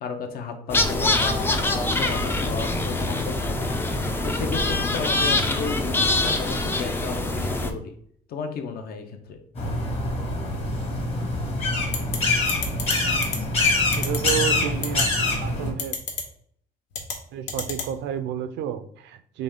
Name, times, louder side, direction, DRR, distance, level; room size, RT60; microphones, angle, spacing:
voice 1, 0.0-3.7 4.2-7.9 8.3-9.4, left 5 dB, 55° left, 6 dB, 0.8 m, -33 dB
sound 1, 0.7-7.7, left 2 dB, 10° left, 0.4 m, -24 dB
sound 2, 9.5-15.7, left 2 dB, 35° left, 1.3 m, -25 dB
sound 3, 11.9-12.2 12.5-12.9 13.2-13.4 13.9-14.3 14.8-15.0 15.8-16.2 16.9-17.1 17.5-17.9, left 6 dB, 85° left, 1.1 m, -28 dB
voice 2, 13.9-15.1 15.4-16.0 17.3-19.4, right 9 dB, 75° right, 10 dB, 0.5 m, -30 dB
4.1 x 3.2 x 3.6 m, 0.64 s
cardioid pair, 145°, 19 cm